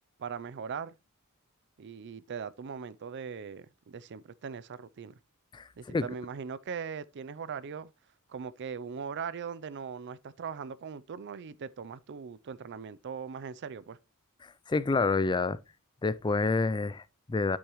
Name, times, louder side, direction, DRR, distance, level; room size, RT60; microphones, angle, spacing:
voice 1, 0.2-1.0 1.8-5.2 5.8-7.9 8.3-14.0, right 6 dB, 55° right, 0.4 m, -40 dB
voice 2, 5.5-6.1 14.4-15.6 16.0-17.6, left 3 dB, 20° left, 0.3 m, -28 dB
12.0 x 6.2 x 3.0 m
head